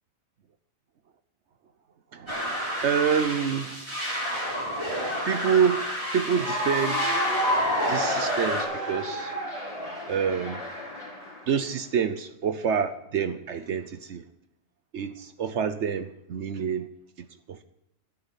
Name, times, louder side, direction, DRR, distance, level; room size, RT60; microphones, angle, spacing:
voice 1, 2.1-3.8 5.2-5.9 6.1-7.2 7.9-9.3 10.1-10.7 11.5-14.2 14.9-16.9 17.2-17.6, right 7 dB, 65° right, 10 dB, 1.0 m, -27 dB
sound 1, 2.3-8.6, equal, 20° right, 3.2 m, -31 dB
Cheering / Applause, 6.3-11.4, equal, 30° left, 4.1 m, -29 dB
11.5 x 9.7 x 7.0 m, 0.83 s
omnidirectional pair, 1.3 m